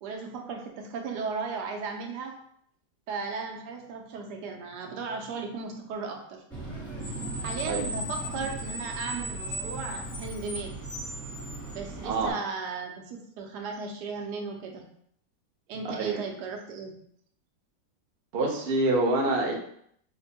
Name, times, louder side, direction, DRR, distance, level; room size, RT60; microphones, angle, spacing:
voice 1, 0.0-2.4 3.1-6.4 7.4-10.8 11.7-14.8 15.7-17.0, right 4 dB, 70° right, 2 dB, 1.1 m, -36 dB
Screech, 6.5-12.3, right 1 dB, ahead, 0.8 m, -36 dB
voice 2, 18.3-19.5, right 2 dB, 90° right, -1 dB, 0.5 m, -26 dB
5.0 x 2.1 x 2.7 m, 0.68 s
omnidirectional pair, 2.0 m